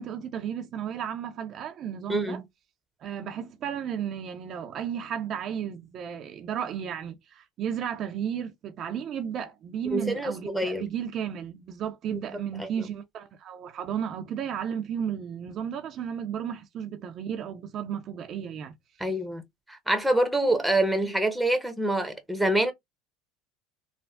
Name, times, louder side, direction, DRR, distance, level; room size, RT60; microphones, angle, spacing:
voice 1, 0.0-2.4 3.0-18.7, right 8 dB, 45° right, 0.5 m, -33 dB
voice 2, 2.1-2.4 9.9-10.9 12.1-12.2 12.6-12.7 19.0-22.7, right 1 dB, ahead, 0.7 m, -26 dB
3.3 x 2.1 x 2.4 m
supercardioid pair, 105°, 0 cm